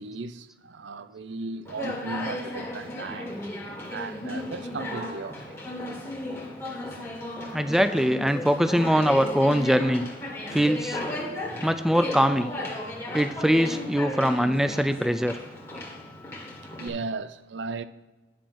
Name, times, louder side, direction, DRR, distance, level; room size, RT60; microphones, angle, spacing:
voice 1, 0.0-3.4 3.9-5.6 11.5-11.6 13.1-13.2 16.8-17.8, right 3 dB, 75° right, 0.6 m, -36 dB
Conversation, 1.6-16.9, left 1 dB, 15° left, 2.0 m, -35 dB
voice 2, 7.4-10.1 10.5-11.0 11.6-12.5 13.1-15.4, equal, ahead, 0.4 m, -23 dB
10.5 x 6.4 x 5.8 m
head